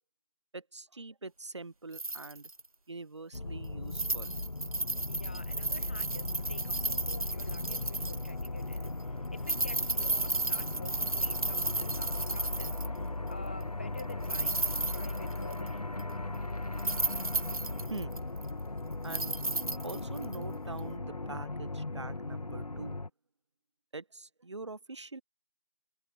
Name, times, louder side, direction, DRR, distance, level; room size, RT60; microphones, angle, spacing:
voice 1, 0.5-2.5 2.9-4.4 17.9-18.1 19.0-19.4 19.8-23.0 23.9-25.2, right 3 dB, 50° right, 1.0 m, -44 dB
sound 1, 1.9-2.6 3.3-3.4 3.9-8.5 8.7-8.9 9.4-13.0 14.0-15.7 16.0-16.1 16.7-18.6 19.1-20.4 20.8-20.9, right 2 dB, 65° right, 1.4 m, -34 dB
sound 2, 3.3-23.1, left 2 dB, 75° left, 1.4 m, -37 dB
voice 2, 5.1-15.8, left 3 dB, 15° left, 0.9 m, -49 dB
figure-of-eight pair, 165°, 19 cm